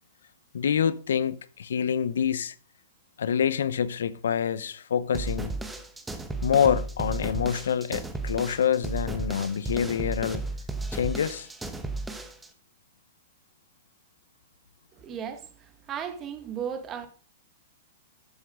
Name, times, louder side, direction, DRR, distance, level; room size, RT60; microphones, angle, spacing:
voice 1, 0.5-2.5 3.2-5.5 6.4-10.4 10.9-11.5, left 8 dB, 85° left, 0.9 m, -26 dB
sound 1, 5.1-12.5, right 2 dB, 5° right, 1.2 m, -34 dB
voice 2, 14.9-17.1, right 8 dB, 25° right, 1.7 m, -36 dB
13.5 x 7.2 x 5.1 m
hypercardioid pair, 150°, 0 cm